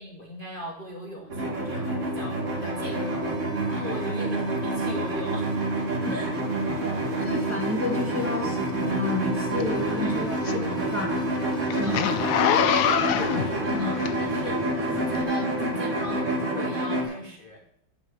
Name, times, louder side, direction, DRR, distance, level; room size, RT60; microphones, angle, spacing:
voice 1, 0.0-5.7 6.1-6.3 9.9-10.2 11.7-12.1 13.4-17.8, left 1 dB, 65° left, 0 dB, 0.5 m, -39 dB
sound 1, 1.2-16.0, right 4 dB, 75° right, 0.5 m, -37 dB
sound 2, 1.3-17.0, right 1 dB, 35° right, 1.9 m, -28 dB
voice 2, 7.2-11.2 11.7-12.1 13.7-14.0, left 3 dB, 10° right, -1 dB, 0.8 m, -31 dB
Zipper (clothing), 9.6-14.5 15.1-15.2, left 9 dB, 90° left, 0.8 m, -25 dB
9.8 x 3.6 x 6.7 m, 0.73 s
omnidirectional pair, 2.3 m